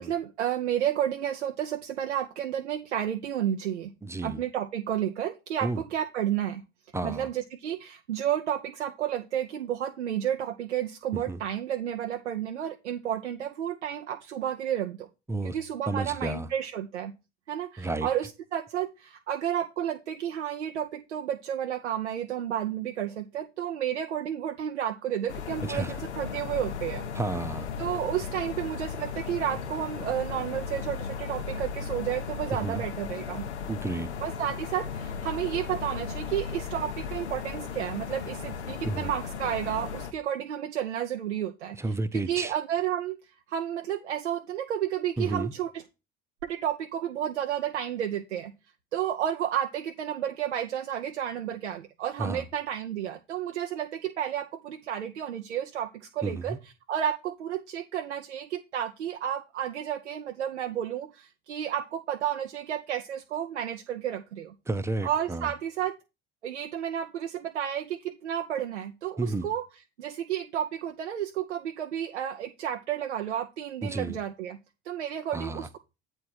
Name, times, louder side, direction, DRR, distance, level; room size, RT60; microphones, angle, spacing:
voice 1, 0.0-3.9 4.2-6.6 7.0-15.1 15.4-17.1 17.5-27.1 27.8-33.4 34.2-41.8 42.3-45.8 46.4-48.5 48.9-56.6 56.9-64.5 65.0-65.9 66.4-69.6 70.0-74.6 74.8-75.8, right 10 dB, 85° right, 0.6 m, -31 dB
voice 2, 4.0-4.4 5.6-5.8 6.9-7.3 11.1-11.4 15.3-15.6 15.9-16.5 17.8-18.1 25.7-25.9 27.1-27.7 32.6-32.8 33.7-34.1 38.8-39.1 41.8-42.5 45.2-45.5 52.2-52.4 56.2-56.6 64.7-65.5 69.2-69.5 73.8-74.2 75.3-75.7, right 2 dB, 10° right, 0.7 m, -31 dB
sound 1, 25.3-40.1, left 6 dB, 80° left, 0.8 m, -36 dB
8.3 x 4.4 x 4.6 m
figure-of-eight pair, 65°, 34 cm